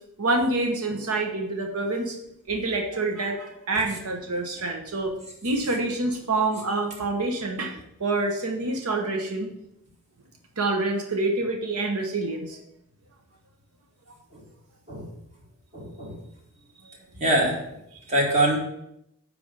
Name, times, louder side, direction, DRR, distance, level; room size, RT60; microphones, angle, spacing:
voice 1, 0.2-2.2 2.5-5.1 5.4-9.5 10.6-12.6 16.8-16.9 17.9-18.0, right 2 dB, 90° right, 2 dB, 0.9 m, -27 dB
voice 2, 15.7-16.2 17.2-17.5 18.1-18.6, right 1 dB, 30° right, -3 dB, 2.1 m, -23 dB
9.8 x 3.3 x 5.3 m, 0.80 s
head